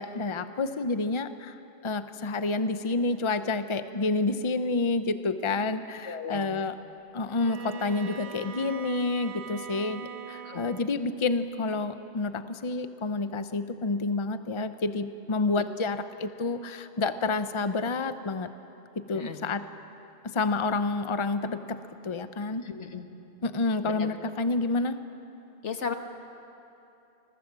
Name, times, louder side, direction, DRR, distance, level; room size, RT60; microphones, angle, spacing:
voice 1, 0.0-6.8 7.1-18.5 19.0-19.7 20.2-21.8 22.0-22.7 23.4-25.0, left 3 dB, 30° left, 10 dB, 0.8 m, -29 dB
voice 2, 6.1-6.5 10.4-10.6 19.1-19.4 22.6-23.0 23.8-24.1 25.6-25.9, left 6 dB, 80° left, 6 dB, 1.7 m, -35 dB
Bowed string instrument, 7.3-11.0, right 7 dB, 70° right, 1.3 m, -41 dB
27.5 x 22.0 x 7.5 m, 2.8 s
omnidirectional pair, 1.2 m